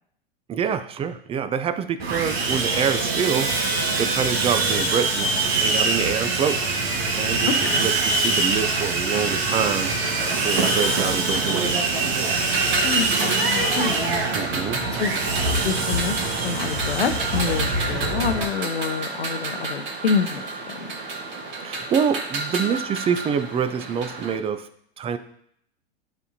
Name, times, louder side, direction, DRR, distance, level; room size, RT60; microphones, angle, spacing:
voice 1, 0.5-6.6 7.2-7.5 7.8-9.9 10.3-11.8 14.3-14.8 21.6-24.7 25.0-25.2, right 7 dB, 20° right, 12 dB, 0.5 m, -26 dB
Sawing, 2.0-18.4, right 3 dB, 75° right, 1.6 m, -24 dB
voice 2, 7.4-7.9 12.8-14.0 15.0-15.2 15.6-20.9, left 6 dB, 85° left, 9 dB, 0.8 m, -27 dB
sound 1, 9.6-24.4, right 3 dB, 35° right, 1.7 m, -31 dB
11.0 x 5.4 x 2.8 m, 0.69 s
hypercardioid pair, 105°, 31 cm